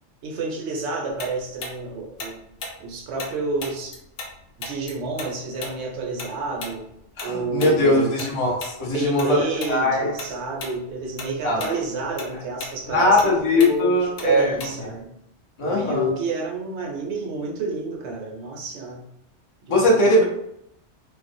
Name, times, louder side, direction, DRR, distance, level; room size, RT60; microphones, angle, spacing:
voice 1, 0.2-2.4 2.8-4.0 4.6-6.9 7.2-8.2 8.9-15.1 15.6-19.1 19.7-20.1, right 3 dB, 70° right, 0 dB, 0.8 m, -29 dB
Tick-tock, 1.2-4.3 4.6-9.3 9.6-9.8 10.2-10.8 11.1-15.0, left 2 dB, 85° left, 1.0 m, -36 dB
voice 2, 7.2-10.1 11.4-11.7 12.9-14.6 15.6-16.1 19.7-20.2, left 1 dB, 35° left, -4 dB, 0.5 m, -20 dB
2.5 x 2.0 x 2.5 m, 0.78 s
omnidirectional pair, 1.3 m